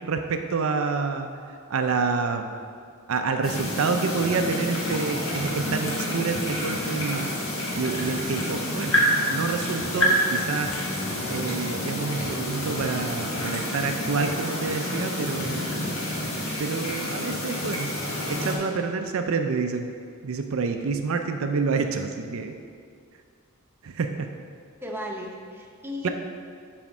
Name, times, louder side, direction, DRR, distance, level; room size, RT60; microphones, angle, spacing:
voice 1, 0.0-2.5 3.1-7.3 7.7-9.0 9.3-10.8 11.3-15.7 16.6-18.0 18.3-19.9 20.2-22.6 23.8-24.3 26.0-26.1, right 4 dB, 70° right, 6 dB, 0.5 m, -28 dB
sound 1, 3.4-18.6, equal, 75° left, 1.6 m, -28 dB
voice 2, 24.8-26.1, left 1 dB, 10° right, -1 dB, 0.8 m, -36 dB
7.7 x 4.2 x 6.0 m, 2.3 s
head